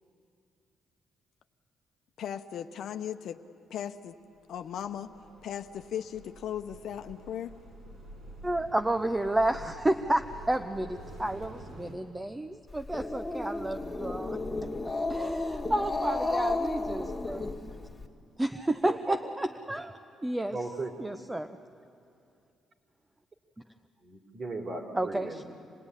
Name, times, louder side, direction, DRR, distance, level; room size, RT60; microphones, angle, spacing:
voice 1, 2.2-3.4 3.7-4.2 4.5-5.1 5.4-7.6, left 9 dB, 70° left, 7 dB, 0.9 m, -37 dB
sound 1, 4.4-11.9, right 1 dB, 65° right, 5.7 m, -48 dB
voice 2, 8.4-14.4 15.1-17.7 18.4-20.6 21.0-21.6 24.9-25.4, right 1 dB, 15° right, 7 dB, 0.7 m, -31 dB
Growling, 12.7-18.0, left 2 dB, 15° left, 2.0 m, -33 dB
voice 3, 18.8-19.3 20.5-20.9 24.0-25.4, right 2 dB, 45° right, 2 dB, 3.4 m, -37 dB
27.0 x 18.0 x 9.8 m, 2.5 s
cardioid pair, 90°, 0 cm